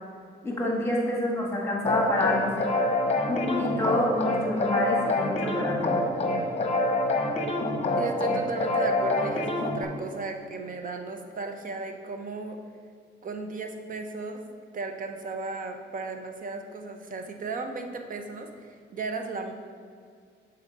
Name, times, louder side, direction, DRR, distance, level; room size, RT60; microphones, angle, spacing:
voice 1, 0.4-2.7 3.3-6.0, left 1 dB, 10° left, -3 dB, 1.6 m, -28 dB
sound 1, 1.8-9.8, left 2 dB, 30° left, 0.9 m, -26 dB
voice 2, 8.0-12.6 13.2-14.4 14.7-19.5, right 3 dB, 45° right, 5 dB, 0.8 m, -35 dB
6.9 x 4.0 x 5.3 m, 2.1 s
cardioid pair, 90°, 20 cm